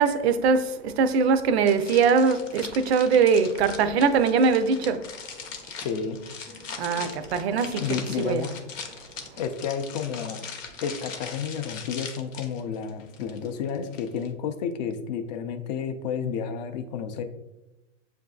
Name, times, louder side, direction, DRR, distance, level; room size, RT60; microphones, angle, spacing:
voice 1, 0.0-5.0 6.8-7.8 8.2-8.5, right 5 dB, 55° right, 0.5 m, -22 dB
sound 1, 1.7-14.3, left 5 dB, 90° left, 0.8 m, -40 dB
voice 2, 5.8-6.2 7.8-8.5 9.4-10.5 10.8-17.2, left 7 dB, 35° left, 0.4 m, -31 dB
7.2 x 2.6 x 2.3 m
hypercardioid pair, 125°, 38 cm